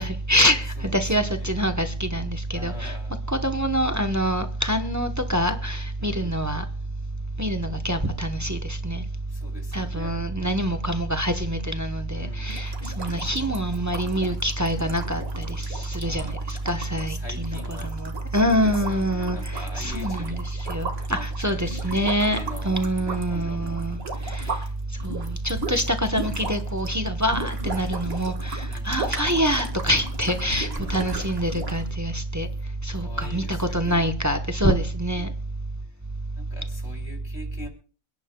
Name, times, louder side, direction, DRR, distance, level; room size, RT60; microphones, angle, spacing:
voice 1, 0.0-2.9 3.3-6.6 7.4-9.0 9.7-22.4 22.6-24.0 24.3-24.5 25.0-32.5 32.8-35.3, equal, 15° right, 0.6 m, -25 dB
voice 2, 0.8-1.5 2.5-3.2 6.0-6.4 9.3-10.8 12.1-12.6 16.0-16.4 16.9-18.0 18.3-20.7 21.1-23.9 28.7-29.0 30.2-30.9 32.9-34.1 35.1-35.3 35.8-36.0 36.4-37.7, left 2 dB, 50° left, 2.9 m, -43 dB
sound 1, 12.5-24.7 25.0-31.9, right 3 dB, 50° right, 1.8 m, -36 dB
27.5 x 10.5 x 2.2 m
omnidirectional pair, 1.4 m